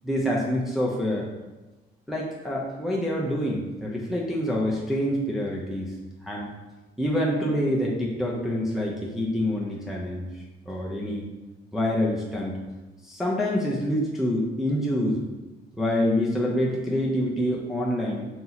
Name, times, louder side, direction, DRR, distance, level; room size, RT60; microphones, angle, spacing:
voice 1, 0.0-1.3 2.1-5.9 6.2-6.5 7.0-11.3 11.7-12.6 13.0-15.2 15.7-18.2, equal, ahead, -4 dB, 0.6 m, -26 dB
2.9 x 2.8 x 3.9 m, 1.1 s
cardioid pair, 90°, 20 cm